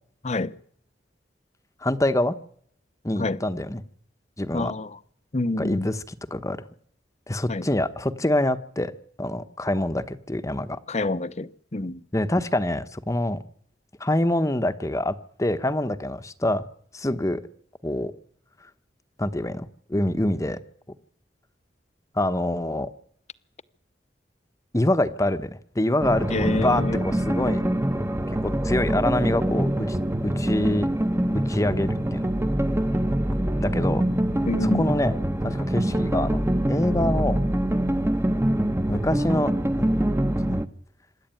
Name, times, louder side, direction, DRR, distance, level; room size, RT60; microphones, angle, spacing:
voice 1, 1.8-2.4 3.0-3.8 4.4-4.7 5.6-6.6 7.3-8.9 9.2-10.8 12.1-13.4 14.0-16.7 16.9-17.4 17.8-18.1 19.2-20.6 22.1-22.9 24.7-27.6 27.9-28.0 28.4-30.0 30.2-30.9 31.3-32.3 33.6-34.0 34.6-35.1 35.4-36.4 36.7-37.4 38.9-39.9 40.4-40.6, left 1 dB, 20° left, 1.0 m, -25 dB
voice 2, 4.5-4.9 5.3-5.9 7.5-7.6 10.9-12.0 26.3-27.0 34.5-35.0, left 2 dB, 40° left, 0.9 m, -27 dB
sound 1, 26.0-40.7, right 1 dB, 15° right, 1.0 m, -24 dB
26.5 x 11.5 x 9.1 m
head